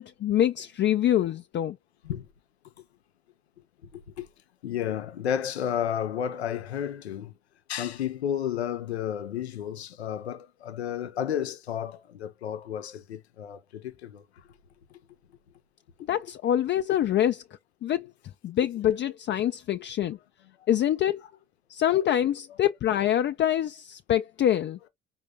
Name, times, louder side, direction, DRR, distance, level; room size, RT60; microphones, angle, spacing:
voice 1, 0.0-1.8 16.1-17.4 17.8-18.1 18.4-20.2 20.7-21.2 21.7-24.8, left 11 dB, 35° left, 0.5 m, -25 dB
voice 2, 4.6-7.3 7.7-14.2, left 9 dB, 85° left, 0.7 m, -32 dB
5.1 x 2.4 x 3.3 m
figure-of-eight pair, 55°, 32 cm